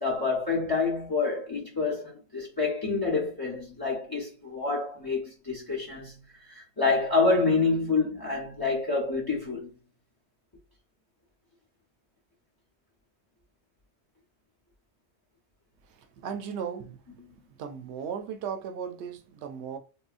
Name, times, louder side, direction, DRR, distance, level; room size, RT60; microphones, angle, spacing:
voice 1, 0.0-6.2 6.4-9.8 17.2-17.3, left 4 dB, 20° left, 0.8 m, -27 dB
voice 2, 16.0-17.2 17.6-19.8, right 7 dB, 80° right, 0.8 m, -36 dB
3.8 x 2.1 x 2.4 m
omnidirectional pair, 1.1 m